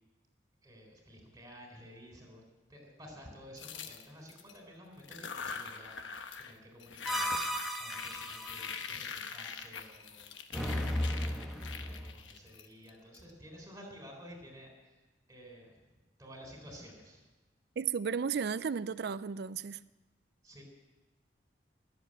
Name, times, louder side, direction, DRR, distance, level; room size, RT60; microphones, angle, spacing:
voice 1, 0.6-2.4 2.7-7.4 7.8-10.4 10.8-14.7 15.3-15.8 16.2-17.2 20.4-20.6, equal, 15° right, 2 dB, 3.9 m, -52 dB
sound 1, 3.6-4.6 5.0-6.5 6.8-13.2, left 6 dB, 85° left, 1.1 m, -43 dB
sound 2, 7.1-8.7 10.5-12.1, equal, ahead, 1.2 m, -35 dB
voice 2, 17.8-19.8, right 6 dB, 60° right, 14 dB, 0.4 m, -34 dB
19.5 x 7.8 x 8.8 m, 1.2 s
head